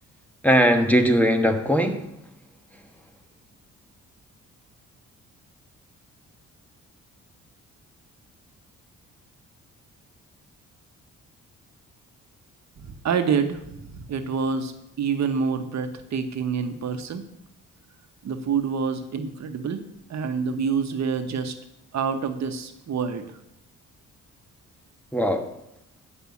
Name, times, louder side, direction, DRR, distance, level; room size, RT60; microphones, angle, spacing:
voice 1, 0.4-2.1 25.1-25.5, equal, 5° left, 1.2 m, -19 dB
voice 2, 13.0-17.2 18.2-19.8 20.1-21.5 21.9-23.2, right 6 dB, 60° right, 1.1 m, -27 dB
9.8 x 5.5 x 8.3 m
cardioid pair, 100°, 31 cm